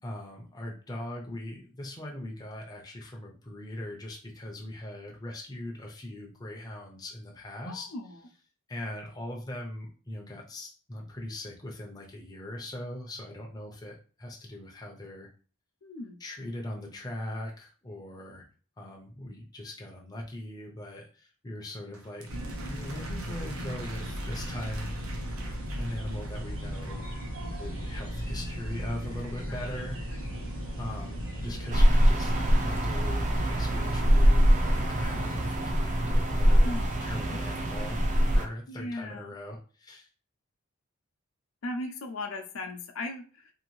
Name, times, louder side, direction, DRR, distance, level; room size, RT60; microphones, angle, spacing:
voice 1, 0.0-7.9 8.7-15.3 16.2-18.4 18.8-22.3 22.7-24.9 25.8-27.1 27.5-30.0 30.8-32.3 32.6-40.1, left 1 dB, 20° left, 0 dB, 0.5 m, -40 dB
voice 2, 7.7-8.2 15.8-16.2 29.5-29.8 36.6-37.4 38.7-39.3 41.6-43.5, left 2 dB, 75° left, 4 dB, 0.5 m, -38 dB
sound 1, 21.9-27.1, right 3 dB, 85° right, 0.6 m, -48 dB
sound 2, 22.3-35.5, equal, 65° right, 0.9 m, -36 dB
sound 3, 31.7-38.4, equal, 35° right, 0.4 m, -23 dB
2.7 x 2.6 x 3.0 m, 0.38 s
head